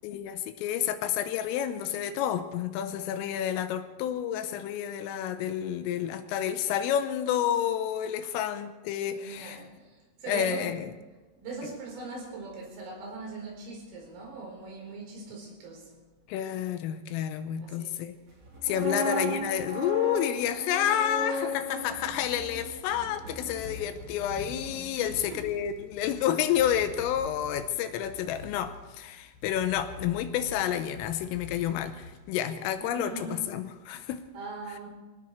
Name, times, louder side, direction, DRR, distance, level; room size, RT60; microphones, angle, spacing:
voice 1, 0.0-9.7 10.3-10.9 16.3-18.2 18.6-34.3, left 10 dB, 80° left, 3.4 m, -30 dB
voice 2, 9.1-10.8 11.3-15.9 17.6-18.0 18.7-19.1 25.0-25.5 32.9-33.5 34.4-34.9, right 3 dB, 75° right, 6.8 m, -41 dB
sound 1, 18.4-24.4 24.7-24.9, equal, 30° right, 3.4 m, -36 dB
sound 2, 22.4-32.9, left 4 dB, 55° left, 3.3 m, -47 dB
25.0 x 17.5 x 3.2 m
omnidirectional pair, 6.0 m